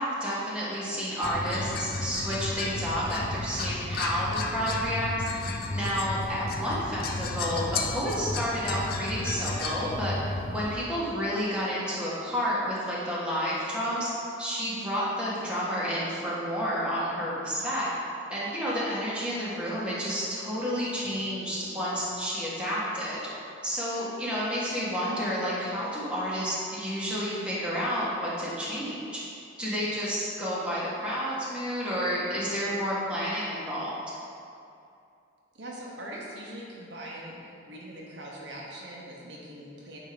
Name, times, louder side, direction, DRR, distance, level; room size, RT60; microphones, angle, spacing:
voice 1, 0.0-10.2 10.5-14.1 14.4-17.9 18.3-23.2 23.6-29.2 29.6-33.9, equal, 5° right, -8 dB, 1.5 m, -30 dB
sound 1, 1.2-10.8, left 3 dB, 50° left, 0.5 m, -33 dB
voice 2, 35.6-40.0, right 1 dB, 65° right, -4 dB, 1.1 m, -42 dB
9.1 x 3.7 x 5.1 m, 2.6 s
head